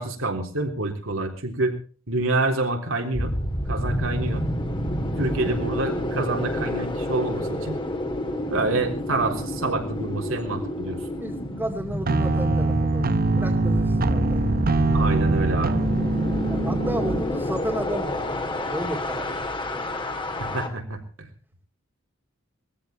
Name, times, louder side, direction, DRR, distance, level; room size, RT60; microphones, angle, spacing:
voice 1, 0.0-1.8 2.1-3.4 3.7-4.4 5.2-7.8 8.5-11.0 14.9-15.8 20.4-21.3, right 2 dB, 70° right, 3 dB, 3.7 m, -27 dB
sound 1, 3.1-20.7, equal, 25° left, 2.5 m, -28 dB
voice 2, 11.2-14.8 16.4-20.1, right 1 dB, 10° right, -2 dB, 2.5 m, -33 dB
sound 2, 12.1-17.2, right 3 dB, 45° right, 0.9 m, -24 dB
20.5 x 15.0 x 4.4 m, 0.40 s
head